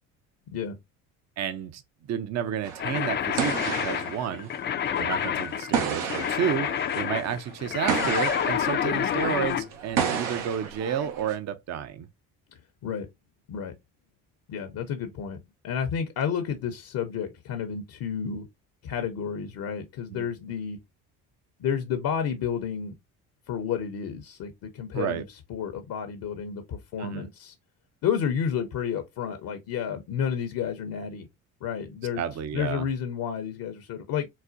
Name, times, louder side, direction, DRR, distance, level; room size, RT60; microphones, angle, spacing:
voice 1, 1.4-1.8 2.1-3.5 3.8-4.5 5.0-6.7 6.9-12.1 20.1-20.3 24.9-25.2 27.0-27.3 32.2-32.9, right 8 dB, 40° right, 0.5 m, -31 dB
sound 1, 2.6-11.4, right 7 dB, 80° right, 0.8 m, -32 dB
sound 2, 2.8-9.7, left 9 dB, 30° left, 0.4 m, -28 dB
voice 2, 14.5-15.4 15.6-18.5 18.8-20.8 21.6-22.9 23.5-25.2 25.5-27.5 28.0-31.3 31.6-32.2 32.5-34.3, left 7 dB, 60° left, 0.7 m, -31 dB
4.0 x 2.1 x 2.4 m
supercardioid pair, 65°, 40 cm